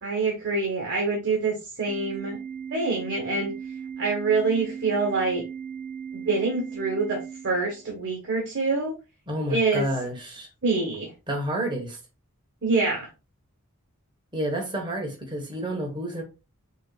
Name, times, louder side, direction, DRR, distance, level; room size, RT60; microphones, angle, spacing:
voice 1, 0.0-2.4 2.7-3.5 4.0-5.4 6.1-8.9 9.5-9.9 10.6-11.1 12.6-13.1, right 3 dB, 55° right, 1.5 m, -26 dB
Organ, 1.9-7.9, right 7 dB, 85° right, 1.1 m, -37 dB
voice 2, 9.3-10.5 11.3-12.0 14.3-16.2, right 1 dB, 20° right, 1.4 m, -30 dB
5.5 x 3.1 x 2.4 m
head